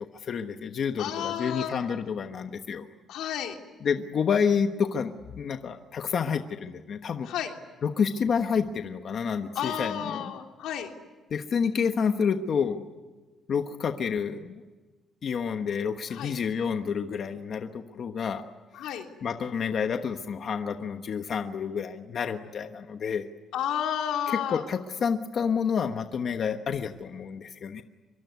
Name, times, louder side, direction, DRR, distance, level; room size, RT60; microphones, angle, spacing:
voice 1, 0.0-2.9 3.8-7.3 7.8-10.3 11.3-12.8 13.5-14.6 15.2-18.4 19.2-23.3 24.3-27.8, left 6 dB, 40° left, 6 dB, 1.1 m, -29 dB
voice 2, 1.0-1.7 3.1-3.6 7.3-7.5 9.5-10.9 16.1-16.3 18.7-19.0 23.5-24.6, left 9 dB, 90° left, 3 dB, 3.3 m, -31 dB
25.5 x 23.5 x 9.5 m, 1.3 s
cardioid pair, 180°, 0 cm